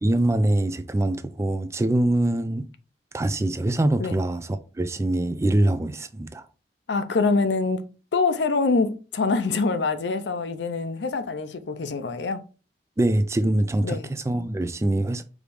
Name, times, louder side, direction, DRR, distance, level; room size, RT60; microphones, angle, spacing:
voice 1, 0.0-2.7 3.1-6.4 13.0-15.2, right 1 dB, 15° right, 0.3 m, -24 dB
voice 2, 6.9-7.8 8.1-12.4 13.8-14.1, left 4 dB, 80° left, 0.5 m, -25 dB
4.8 x 2.6 x 3.4 m
head